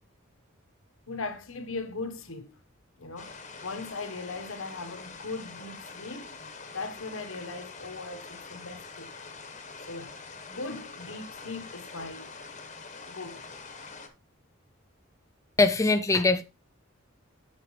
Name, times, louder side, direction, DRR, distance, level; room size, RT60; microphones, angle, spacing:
voice 1, 1.1-2.6 3.0-6.4 6.7-9.1 9.9-10.1 10.5-12.3 13.1-13.5, left 3 dB, 75° left, 1.4 m, -39 dB
sound 1, 3.2-14.1, left 4 dB, 35° left, 1.3 m, -45 dB
voice 2, 15.6-16.4, left 3 dB, 15° left, 0.5 m, -22 dB
8.5 x 7.5 x 3.3 m
head